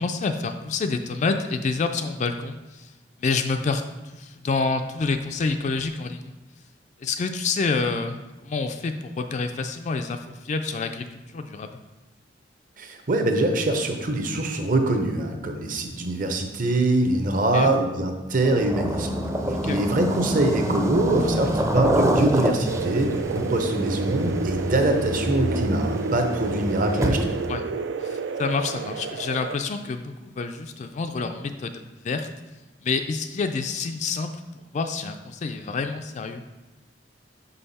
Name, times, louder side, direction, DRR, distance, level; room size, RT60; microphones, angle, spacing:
voice 1, 0.0-2.9 3.2-3.8 4.1-6.3 7.0-11.1 11.3-11.8 17.5-17.7 19.6-19.8 27.5-27.6 28.0-32.3 32.8-34.3 34.7-36.4, left 4 dB, 40° left, 7 dB, 0.3 m, -28 dB
voice 2, 12.8-19.1 19.6-27.4, right 2 dB, 50° right, 5 dB, 0.8 m, -24 dB
sound 1, 18.4-27.5, right 1 dB, 15° right, 0.5 m, -26 dB
sound 2, 22.7-29.6, right 4 dB, 80° right, 0.4 m, -30 dB
5.5 x 5.3 x 4.1 m, 1.1 s
head